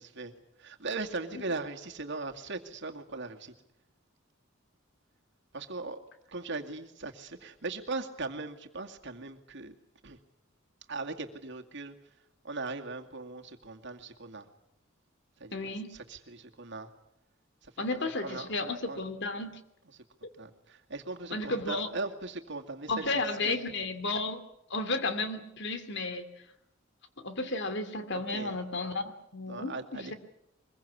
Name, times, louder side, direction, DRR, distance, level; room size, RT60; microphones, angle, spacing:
voice 1, 0.0-3.5 5.5-6.0 6.3-9.7 10.0-10.2 10.9-12.0 12.4-14.5 15.4-16.9 17.6-19.0 19.9-20.0 20.3-23.6 28.1-28.6 29.5-30.1, right 3 dB, 60° right, 4 dB, 2.3 m, -39 dB
voice 2, 15.5-15.9 17.8-19.5 21.3-21.9 22.9-24.4 24.7-26.2 27.2-30.1, left 2 dB, 60° left, 10 dB, 2.6 m, -33 dB
24.0 x 22.0 x 8.6 m, 0.80 s
head